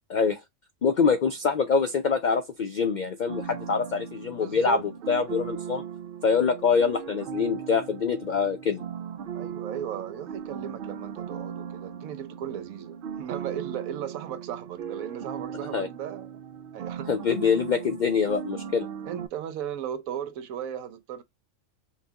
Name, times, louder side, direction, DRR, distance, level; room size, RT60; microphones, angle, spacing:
voice 1, 0.1-0.4 0.8-4.8 5.1-5.8 6.2-8.8 15.7-15.9 17.1-18.9, left 5 dB, 80° left, 0.4 m, -25 dB
sound 1, 3.3-19.3, right 8 dB, 65° right, 0.5 m, -38 dB
voice 2, 4.4-4.8 9.3-16.4 16.7-17.1 19.1-21.2, right 9 dB, 85° right, 1.1 m, -36 dB
5.8 x 2.3 x 2.7 m
omnidirectional pair, 1.4 m